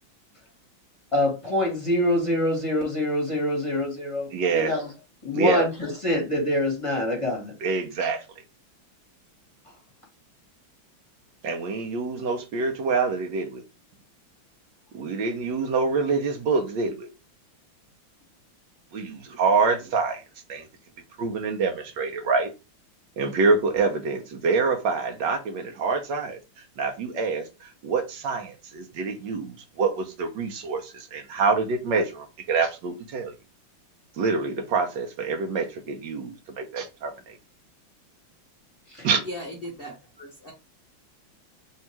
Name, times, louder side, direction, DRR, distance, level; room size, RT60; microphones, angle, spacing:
voice 1, 1.1-4.3 4.5-4.9 5.2-7.5 38.9-39.1, left 1 dB, 20° left, 1.3 m, -25 dB
voice 2, 4.3-4.7 5.3-5.7 7.6-8.2 11.4-13.6 14.9-17.1 18.9-20.2 20.5-20.7 21.2-22.5 23.2-26.4 26.8-33.3 34.2-37.4 39.0-39.2, right 4 dB, 70° right, 1.3 m, -26 dB
voice 3, 39.2-40.5, equal, 40° left, 0.8 m, -37 dB
3.4 x 2.8 x 4.3 m
omnidirectional pair, 2.2 m